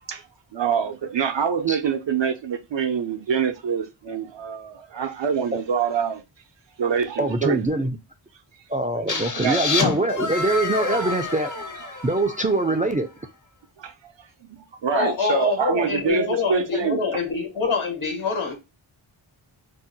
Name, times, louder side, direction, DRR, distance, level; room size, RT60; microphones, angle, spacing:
voice 1, 0.0-6.2 6.8-7.7 8.5-8.7 9.1-9.7 10.9-11.2 11.8-12.8 13.8-17.0, right 7 dB, 65° right, 0.6 m, -26 dB
voice 2, 7.2-8.0 8.7-11.5 12.0-13.1, right 2 dB, 20° right, 0.3 m, -23 dB
sound 1, 9.1-12.8, left 4 dB, 40° left, 0.7 m, -28 dB
voice 3, 14.9-18.5, left 5 dB, 75° left, 1.3 m, -25 dB
2.7 x 2.1 x 3.9 m
cardioid pair, 50°, 49 cm